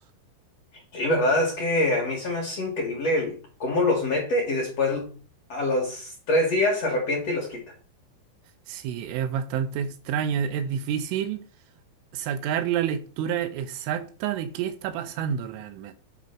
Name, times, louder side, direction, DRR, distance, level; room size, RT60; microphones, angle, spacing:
voice 1, 0.9-5.2 5.5-7.6, left 1 dB, 50° left, 2.2 m, -25 dB
voice 2, 8.7-11.4 12.1-15.9, right 8 dB, 85° right, 3.3 m, -29 dB
9.1 x 4.1 x 5.9 m
omnidirectional pair, 5.4 m